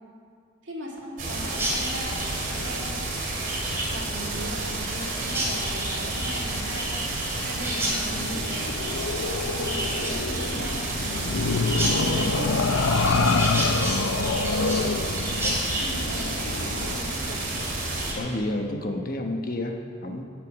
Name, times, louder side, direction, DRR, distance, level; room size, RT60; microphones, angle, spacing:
voice 1, 0.6-3.0 3.9-11.3 11.7-13.9 15.8-17.4, equal, 65° right, -2 dB, 2.7 m, -38 dB
sound 1, 1.2-18.1, right 2 dB, 45° right, 2.7 m, -31 dB
Chirp tweet, 1.5-18.4, right 1 dB, 10° right, 3.2 m, -33 dB
sound 2, 8.1-17.1, left 4 dB, 80° left, 0.7 m, -27 dB
voice 2, 18.1-20.2, left 1 dB, 45° left, 3 dB, 1.2 m, -30 dB
14.5 x 6.8 x 9.2 m, 2.2 s
head